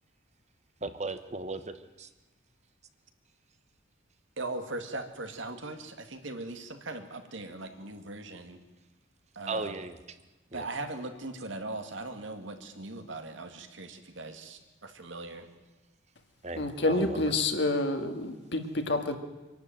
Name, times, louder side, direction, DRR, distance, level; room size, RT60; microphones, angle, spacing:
voice 1, 0.8-2.1 9.4-10.0 10.5-10.7 16.4-17.3, right 3 dB, 35° right, 10 dB, 1.1 m, -37 dB
voice 2, 4.4-8.6 9.4-9.7 10.5-15.5, right 2 dB, 70° right, 6 dB, 2.1 m, -39 dB
voice 3, 16.6-19.2, left 2 dB, 60° left, 6 dB, 2.0 m, -28 dB
25.0 x 12.0 x 9.1 m, 1.2 s
head